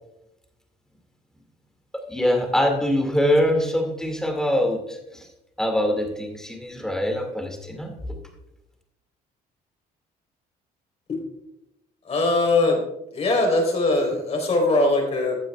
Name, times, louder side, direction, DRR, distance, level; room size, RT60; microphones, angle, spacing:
voice 1, 1.9-5.3 5.6-7.9, left 1 dB, 5° left, 2 dB, 2.3 m, -23 dB
voice 2, 12.0-12.8 13.1-15.3, left 2 dB, 40° left, 1 dB, 4.3 m, -21 dB
15.0 x 9.0 x 2.4 m, 0.90 s
cardioid pair, 110°, 17 cm